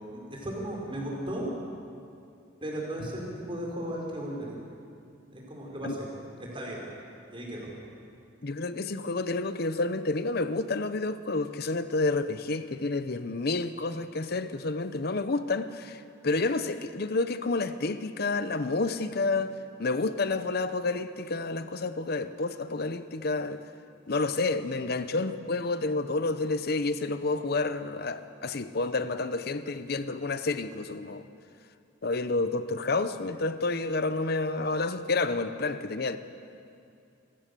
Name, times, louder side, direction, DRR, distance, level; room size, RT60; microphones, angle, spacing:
voice 1, 0.1-1.5 2.6-4.6 5.3-6.8 7.3-7.7 16.3-16.4, right 1 dB, 30° right, -2 dB, 4.8 m, -36 dB
voice 2, 8.4-19.5 19.8-23.6 24.1-31.2 32.0-36.2, left 3 dB, 55° left, 11 dB, 0.8 m, -29 dB
26.0 x 15.0 x 6.9 m, 2.5 s
head